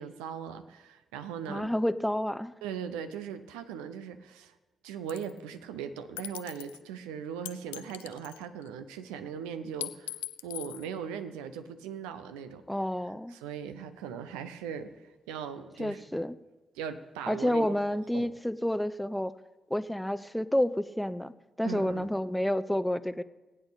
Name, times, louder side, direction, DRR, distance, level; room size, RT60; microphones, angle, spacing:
voice 1, 0.0-1.7 2.6-4.5 4.8-12.6 13.3-16.2 16.7-18.3 21.6-22.1, right 7 dB, 85° right, 10 dB, 0.7 m, -39 dB
voice 2, 1.5-2.5 12.7-13.4 15.8-16.4 17.3-19.3 19.7-21.3 21.6-23.2, left 1 dB, 5° left, 14 dB, 0.6 m, -29 dB
Bouncing Shell Casings (Various Sizes), 5.1-5.4 6.2-6.8 7.5-8.7 9.8-10.9, left 17 dB, 85° left, 0.3 m, -40 dB
20.0 x 8.6 x 4.1 m, 1.2 s
hypercardioid pair, 40°, 0 cm